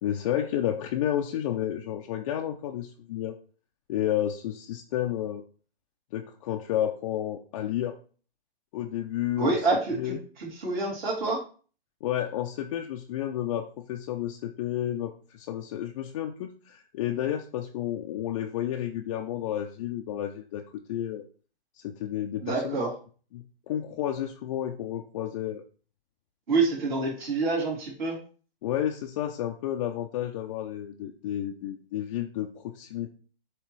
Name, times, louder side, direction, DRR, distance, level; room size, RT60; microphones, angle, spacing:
voice 1, 0.0-3.4 3.9-5.4 6.1-8.0 8.7-9.6 9.9-10.2 12.0-21.2 21.8-22.8 23.3-25.6 28.6-33.1, left 11 dB, 35° left, 2 dB, 0.6 m, -31 dB
voice 2, 9.4-11.4 22.4-22.9 26.5-28.2, right 3 dB, 50° right, -4 dB, 3.5 m, -27 dB
7.6 x 3.2 x 4.6 m, 0.39 s
figure-of-eight pair, 125°, 29 cm